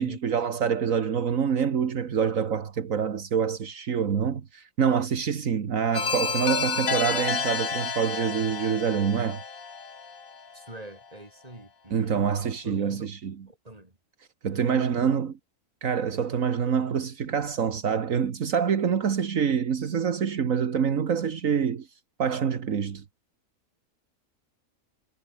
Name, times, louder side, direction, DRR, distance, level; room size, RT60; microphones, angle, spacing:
voice 1, 0.0-9.4 11.9-13.4 14.4-15.3 15.8-21.9 22.2-23.0, right 7 dB, 75° right, 1.8 m, -26 dB
sound 1, 5.9-10.7, left 5 dB, 80° left, 2.5 m, -30 dB
voice 2, 10.5-12.3 12.6-13.1 13.5-14.0 14.5-15.3, right 1 dB, 25° right, 4.7 m, -44 dB
omnidirectional pair, 1.4 m